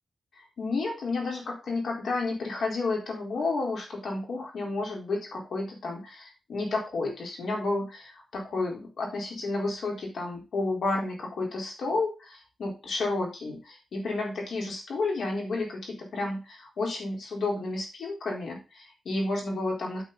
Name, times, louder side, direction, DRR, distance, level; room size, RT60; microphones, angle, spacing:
voice 1, 0.4-20.0, left 3 dB, 75° left, 0 dB, 4.1 m, -31 dB
8.5 x 8.4 x 4.0 m, 0.29 s
wide cardioid pair, 110°, 0 cm